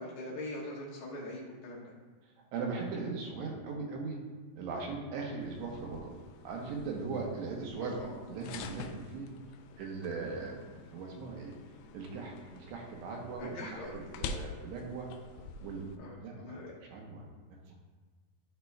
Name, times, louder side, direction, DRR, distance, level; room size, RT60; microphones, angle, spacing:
voice 1, 0.0-1.8 7.8-8.2 13.4-14.0 16.0-16.7, left 1 dB, 70° left, -5 dB, 2.9 m, -42 dB
voice 2, 2.5-4.2 4.6-6.2 6.4-7.9 8.3-9.3 9.8-11.5 11.9-15.1 15.6-15.9 16.2-17.8, right 4 dB, 80° right, -1 dB, 3.0 m, -39 dB
sound 1, 5.4-16.0, left 4 dB, 85° left, 2.3 m, -47 dB
13.0 x 4.4 x 2.2 m, 1.4 s
omnidirectional pair, 5.0 m